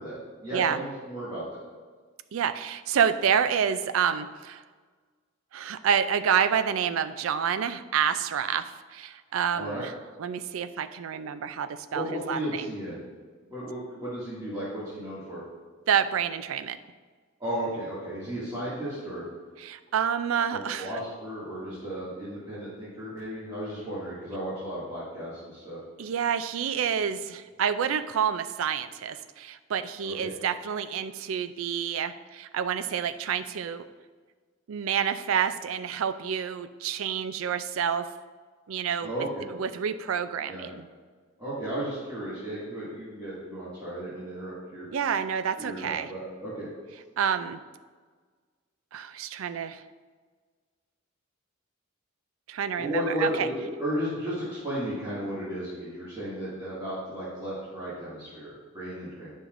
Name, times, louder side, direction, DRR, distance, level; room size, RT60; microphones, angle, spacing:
voice 1, 0.0-1.6 9.5-9.8 11.9-13.0 13.5-15.4 17.4-19.2 20.5-25.8 30.0-30.3 39.0-39.4 40.5-40.7 41.4-44.9 45.6-46.7 52.8-59.3, right 1 dB, 20° right, -11 dB, 2.0 m, -34 dB
voice 2, 2.3-4.6 5.5-9.9 10.2-12.7 15.9-16.8 19.6-20.9 26.0-33.8 34.7-38.1 38.7-39.1 39.6-40.9 44.9-46.1 47.2-47.6 48.9-49.8 52.5-53.5, right 8 dB, 75° right, 12 dB, 0.4 m, -28 dB
9.9 x 5.7 x 2.5 m, 1.5 s
head